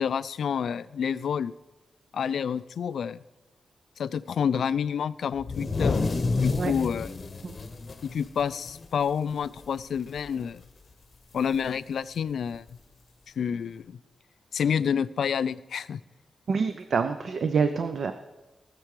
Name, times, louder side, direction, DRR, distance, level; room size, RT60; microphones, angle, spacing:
voice 1, 0.0-1.5 2.1-3.2 4.0-6.0 6.4-7.1 8.0-10.6 11.3-12.8 13.4-14.0 14.5-16.0, left 7 dB, 75° left, 17 dB, 0.3 m, -28 dB
sound 1, 5.4-9.1 9.4-9.6 10.0-10.4 11.5-11.6 12.7-12.8, left 3 dB, 35° left, 0.8 m, -29 dB
voice 2, 16.5-18.1, right 5 dB, 55° right, 9 dB, 0.5 m, -26 dB
18.5 x 6.8 x 4.8 m, 1.1 s
wide cardioid pair, 170°, 0 cm